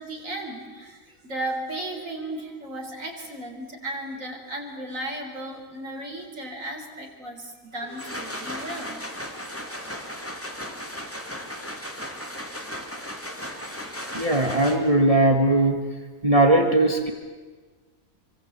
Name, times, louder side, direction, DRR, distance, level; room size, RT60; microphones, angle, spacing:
voice 1, 0.0-9.0, right 1 dB, 75° right, 2 dB, 4.6 m, -35 dB
sound 1, 7.7-15.1, equal, 10° left, 2.4 m, -36 dB
voice 2, 14.1-15.8 16.2-17.1, right 2 dB, 25° right, 4 dB, 1.8 m, -19 dB
25.5 x 24.5 x 8.2 m, 1.4 s
omnidirectional pair, 1.4 m